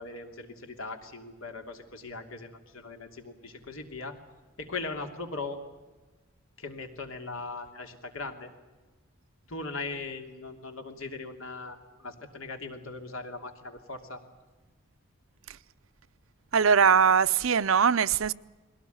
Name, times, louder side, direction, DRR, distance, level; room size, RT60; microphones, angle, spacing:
voice 1, 0.0-4.2 4.6-5.6 6.6-8.5 9.5-14.2, left 3 dB, 85° left, 3.0 m, -39 dB
voice 2, 16.5-18.3, right 6 dB, 80° right, 0.6 m, -21 dB
21.5 x 18.0 x 9.4 m
head